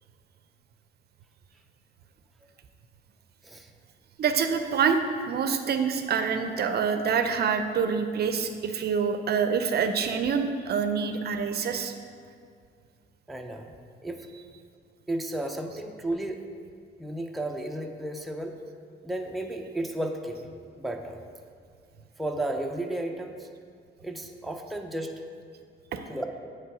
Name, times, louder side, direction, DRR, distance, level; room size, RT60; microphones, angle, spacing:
voice 1, 4.2-11.9 14.3-14.4 25.9-26.0, right 6 dB, 55° right, 8 dB, 0.5 m, -26 dB
voice 2, 13.3-13.8 14.0-14.3 15.1-16.5 17.0-18.6 19.0-21.2 22.2-23.5 24.0-25.2 26.1-26.3, right 1 dB, ahead, 3 dB, 0.4 m, -33 dB
8.4 x 3.3 x 4.8 m, 2.1 s
cardioid pair, 90°, 20 cm